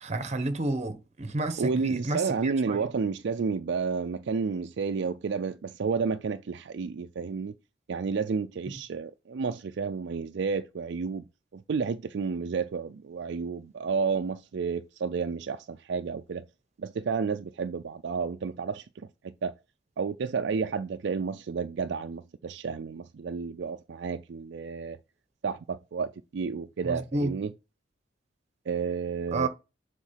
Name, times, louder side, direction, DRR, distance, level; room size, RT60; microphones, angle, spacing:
voice 1, 0.0-2.9 26.8-27.3 29.3-29.5, right 2 dB, 35° right, 1.0 m, -31 dB
voice 2, 1.6-7.5 7.9-11.2 11.5-16.4 16.8-19.5 20.0-25.0 25.4-27.5 28.7-29.5, right 5 dB, 65° right, 0.4 m, -31 dB
7.3 x 3.8 x 5.7 m
head